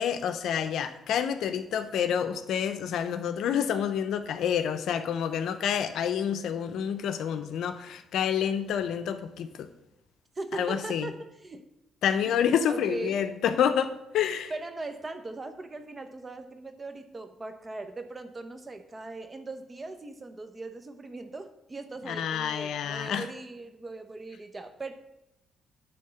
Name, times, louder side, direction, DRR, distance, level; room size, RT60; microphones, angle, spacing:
voice 1, 0.0-9.7 10.5-11.1 12.0-14.5 22.1-23.2, left 8 dB, 75° left, 9 dB, 0.7 m, -28 dB
voice 2, 10.4-11.6 12.2-12.3 12.7-13.2 14.5-24.9, right 3 dB, 25° right, 8 dB, 0.9 m, -39 dB
10.5 x 3.6 x 6.9 m, 0.89 s
cardioid pair, 90°, 0 cm